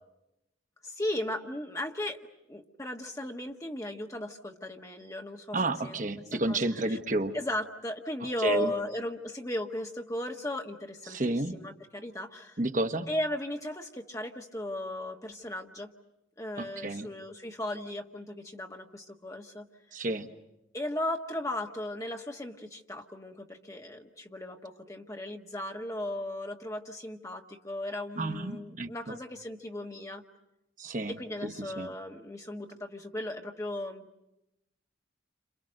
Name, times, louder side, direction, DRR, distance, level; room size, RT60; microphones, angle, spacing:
voice 1, 0.8-2.2 2.5-5.6 5.8-6.2 6.5-6.6 6.9-7.0 7.3-12.6 13.1-15.9 16.4-19.6 20.7-30.2 31.1-34.1, left 1 dB, 15° left, 2 dB, 1.6 m, -36 dB
voice 2, 5.5-7.4 8.4-8.7 11.1-11.7 12.6-13.1 16.6-17.1 19.9-20.3 28.2-29.1 30.8-31.2 31.4-31.9, right 2 dB, 40° right, 6 dB, 1.1 m, -31 dB
29.5 x 27.5 x 6.5 m, 0.90 s
head